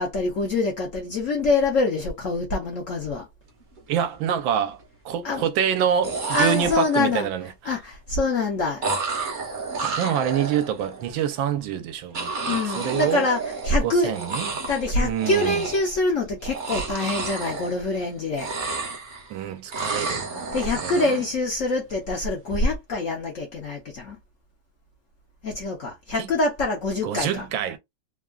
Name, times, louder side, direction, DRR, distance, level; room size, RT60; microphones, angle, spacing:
voice 1, 0.0-3.3 5.2-5.5 6.3-7.3 7.6-8.9 12.4-14.2 14.5-18.5 20.5-24.2 25.4-27.4, left 2 dB, 60° left, 0.8 m, -25 dB
sound 1, 3.6-3.8 4.1-4.7 5.8-5.9 6.0-7.2 8.8-11.0 12.1-13.9 14.1-14.9 15.2-16.0 16.4-18.1 18.3-19.3 19.7-21.3, right 3 dB, 50° right, 0.5 m, -31 dB
voice 2, 3.9-4.8 5.0-7.7 9.8-13.2 13.8-14.5 15.0-15.6 19.3-20.3 20.8-21.2 26.2-26.3 27.0-27.8, right 9 dB, 80° right, 1.4 m, -26 dB
3.5 x 2.3 x 2.3 m
omnidirectional pair, 2.1 m